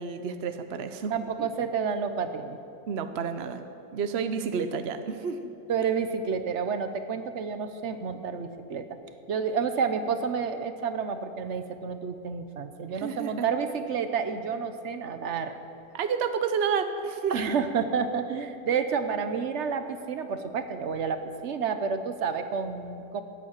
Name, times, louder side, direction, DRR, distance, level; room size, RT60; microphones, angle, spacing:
voice 1, 0.0-1.1 1.4-1.5 2.9-3.6 3.9-5.5 12.9-13.4 15.9-17.3, right 6 dB, 75° right, 9 dB, 0.5 m, -30 dB
voice 2, 1.1-2.6 5.7-8.9 9.3-15.5 17.3-23.2, right 6 dB, 50° right, 9 dB, 0.9 m, -30 dB
14.5 x 9.0 x 8.9 m, 2.7 s
omnidirectional pair, 2.0 m